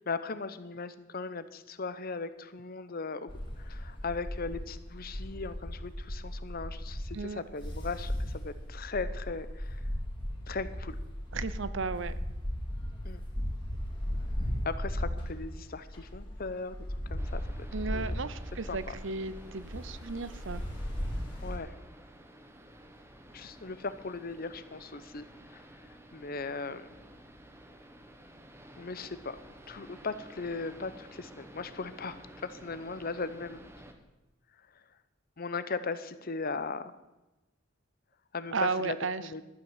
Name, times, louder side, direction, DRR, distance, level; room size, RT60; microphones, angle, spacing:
voice 1, 0.0-3.3 3.6-9.8 10.5-11.0 13.0-13.2 14.6-16.8 17.1-17.4 17.9-18.2 18.7-18.8 21.4-21.7 23.3-25.6 26.1-26.9 28.8-29.4 29.7-33.9 35.4-36.9 38.3-39.4, left 4 dB, 45° left, 13 dB, 0.8 m, -38 dB
sound 1, 3.3-21.6, equal, 25° left, 2.6 m, -37 dB
voice 2, 11.3-12.1 17.7-20.6 38.5-39.2, right 4 dB, 65° right, 15 dB, 0.7 m, -34 dB
sound 2, 17.2-33.9, right 1 dB, 10° right, 1.2 m, -52 dB
12.5 x 8.7 x 7.3 m, 1.0 s
head